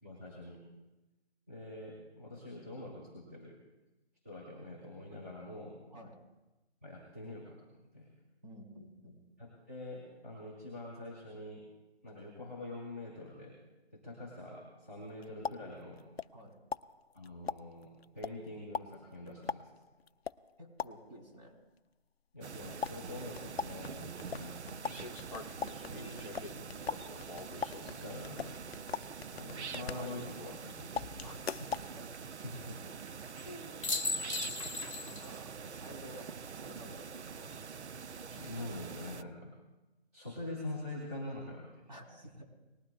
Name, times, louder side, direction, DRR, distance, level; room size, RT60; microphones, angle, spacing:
voice 1, 0.0-0.6 1.5-3.5 4.2-5.8 6.8-7.6 7.9-8.1 9.4-11.7 12.0-13.6 13.9-16.1 17.1-19.7 22.3-25.3 27.7-28.6 29.3-30.9 32.4-33.2 38.4-39.5 40.1-41.8, left 1 dB, 15° right, -6 dB, 1.7 m, -45 dB
voice 2, 8.4-9.2 16.3-16.6 20.6-21.6 25.8-26.8 31.2-31.7 31.9-32.1 33.4-33.7 35.0-37.8 41.9-42.4, equal, 40° right, 0 dB, 3.3 m, -51 dB
sound 1, 15.0-16.5 16.7-21.3 22.8-30.6 31.0-31.9, left 6 dB, 65° left, 0.5 m, -42 dB
sound 2, 22.4-39.2, right 6 dB, 85° right, 0.6 m, -45 dB
sound 3, 23.4-23.5 24.9-28.1 29.9-30.6 33.4-33.5 33.8-35.4 35.7-35.8 38.1-38.6, left 2 dB, 30° left, 0.9 m, -41 dB
19.5 x 12.0 x 2.4 m, 1.1 s
figure-of-eight pair, 175°, 33 cm